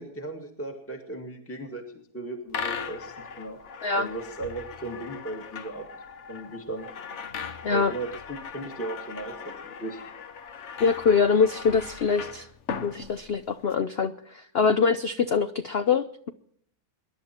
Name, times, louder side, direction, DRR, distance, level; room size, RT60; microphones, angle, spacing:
voice 1, 0.0-3.6 3.9-5.9 6.3-6.9 7.7-10.0, right 2 dB, 10° left, 3 dB, 1.8 m, -36 dB
sound 1, 2.5-13.7, left 6 dB, 50° left, 1.1 m, -39 dB
voice 2, 10.8-12.5 12.8-16.3, left 5 dB, 65° left, 10 dB, 0.6 m, -24 dB
24.5 x 11.0 x 4.4 m, 0.64 s
omnidirectional pair, 1.9 m